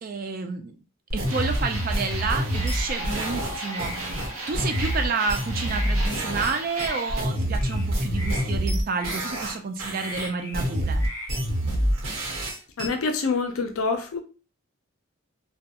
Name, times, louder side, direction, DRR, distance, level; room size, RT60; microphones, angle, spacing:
voice 1, 0.0-0.8 1.1-11.0, right 4 dB, 40° right, 0.3 m, -30 dB
sound 1, 1.1-6.5 6.8-9.5 9.8-12.9, equal, 70° right, 1.0 m, -27 dB
sound 2, 1.3-7.2, right 1 dB, 85° right, 0.6 m, -36 dB
sound 3, 1.9-2.2 2.5-3.3 3.7-4.3 4.7-5.0 5.6-6.3 6.7-7.0 7.5-7.9 8.1-8.5 8.9-9.6 9.9-10.7 11.0-11.3, equal, 15° left, 0.5 m, -38 dB
voice 2, 12.8-14.2, left 4 dB, 80° left, 0.5 m, -26 dB
2.3 x 2.2 x 2.8 m
head